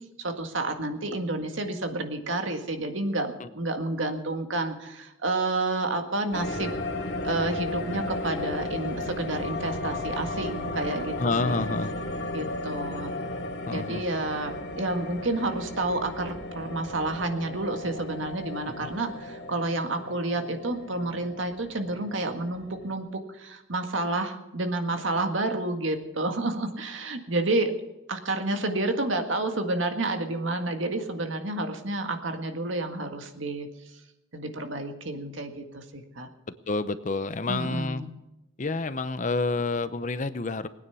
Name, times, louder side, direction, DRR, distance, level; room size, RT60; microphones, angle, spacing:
voice 1, 0.2-6.7 7.2-11.7 12.3-13.1 13.7-27.7 28.1-33.7 34.3-36.3 37.5-38.1, right 2 dB, 75° right, 6 dB, 1.8 m, -30 dB
sound 1, 6.3-22.9, left 2 dB, 60° left, 2.3 m, -35 dB
voice 2, 11.2-11.9 13.7-14.0 18.8-18.9 36.7-38.0 38.6-40.7, left 3 dB, 40° left, 13 dB, 0.7 m, -28 dB
20.5 x 9.5 x 7.0 m, 0.96 s
head